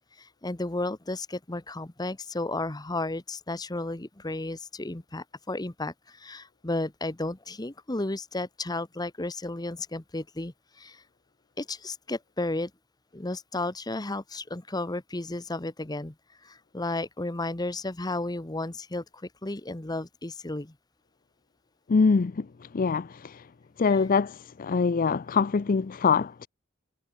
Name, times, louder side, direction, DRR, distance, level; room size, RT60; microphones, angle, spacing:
voice 1, 0.2-11.0 11.6-12.7 13.1-16.1 16.4-20.7 23.9-24.0, left 2 dB, 20° left, 1.0 m, -33 dB
voice 2, 21.9-22.5 22.7-23.5 23.8-26.5, left 5 dB, 40° left, 0.4 m, -24 dB
head